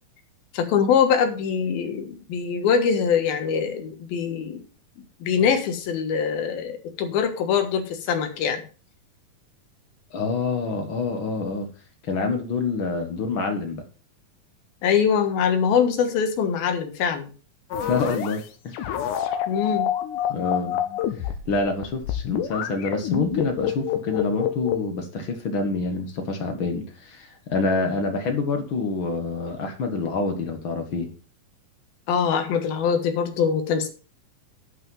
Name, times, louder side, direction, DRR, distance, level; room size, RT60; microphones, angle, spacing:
voice 1, 0.5-4.6 5.2-8.6 14.8-17.3 19.5-19.9 32.1-33.9, left 7 dB, 85° left, 6 dB, 3.2 m, -23 dB
voice 2, 10.1-11.7 12.0-13.8 17.8-18.8 20.3-20.8 21.2-31.1, left 3 dB, 55° left, 5 dB, 1.4 m, -27 dB
sound 1, 17.7-18.4 18.7-24.8, left 10 dB, 70° left, 2.2 m, -27 dB
11.0 x 5.8 x 5.5 m, 0.36 s
omnidirectional pair, 4.2 m